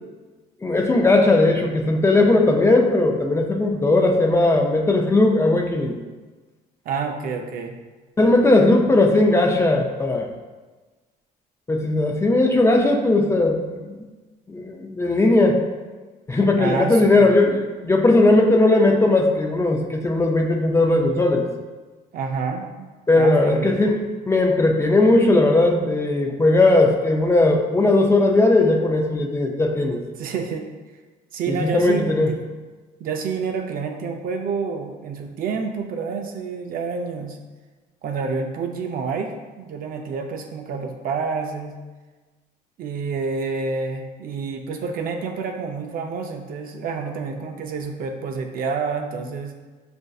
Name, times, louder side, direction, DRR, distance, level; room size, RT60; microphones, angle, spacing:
voice 1, 0.6-6.0 8.2-10.3 11.7-14.0 14.5-15.6 16.3-21.5 23.1-24.0 24.3-30.0 31.5-32.3, left 2 dB, 15° left, 2 dB, 0.4 m, -18 dB
voice 2, 6.9-7.8 16.5-17.4 22.1-22.9 23.1-23.9 30.2-30.7 31.3-32.5 33.0-37.4 38.0-41.8 42.8-49.5, right 5 dB, 60° right, 4 dB, 0.5 m, -28 dB
6.2 x 2.6 x 2.3 m, 1.3 s
cardioid pair, 110°, 17 cm